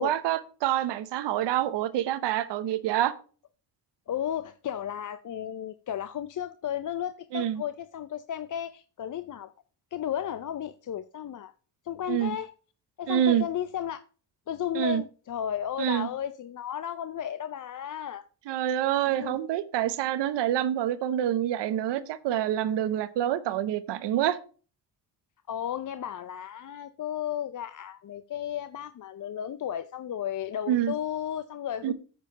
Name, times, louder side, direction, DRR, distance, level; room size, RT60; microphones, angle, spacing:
voice 1, 0.0-3.1 7.3-7.6 12.1-12.4 13.1-13.4 14.7-15.0 15.8-16.1 18.5-24.4 30.7-30.9 31.8-31.9, right 11 dB, 90° right, 0.8 m, -27 dB
voice 2, 4.1-9.5 9.9-11.5 11.8-12.5 13.0-14.0 14.5-18.2 19.1-19.4 19.8-20.0 25.5-31.9, left 10 dB, 50° left, 0.6 m, -34 dB
9.4 x 4.6 x 5.5 m
cardioid pair, 60°, 41 cm